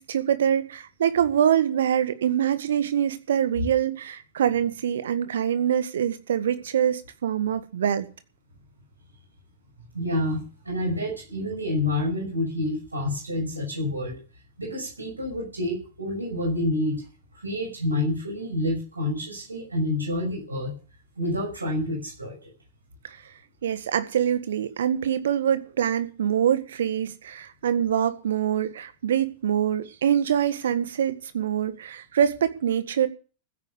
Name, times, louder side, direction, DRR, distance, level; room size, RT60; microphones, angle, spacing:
voice 1, 0.0-8.1 23.0-23.2 23.6-33.1, right 9 dB, 65° right, 11 dB, 1.7 m, -24 dB
voice 2, 9.9-14.2 14.6-17.0 17.4-20.7 21.2-22.5, left 1 dB, 80° right, 0 dB, 6.1 m, -28 dB
15.5 x 9.5 x 6.9 m, 0.36 s
figure-of-eight pair, 90°, 0 cm